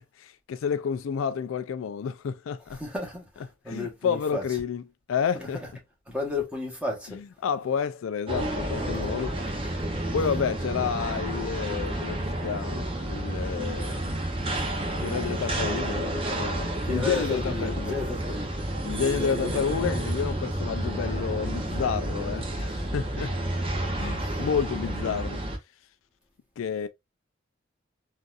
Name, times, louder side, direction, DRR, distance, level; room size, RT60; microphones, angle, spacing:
voice 1, 0.0-2.8 3.7-5.6 7.1-9.6 10.1-14.2 15.0-18.0 18.8-23.3 24.0-25.4 26.6-26.9, left 7 dB, 90° left, 0.4 m, -30 dB
voice 2, 2.8-3.2 3.6-4.4 6.1-7.2 16.8-18.5, left 2 dB, 5° right, 1.2 m, -32 dB
sound 1, 8.3-25.6, right 1 dB, 30° right, 0.7 m, -30 dB
3.9 x 2.5 x 2.4 m
head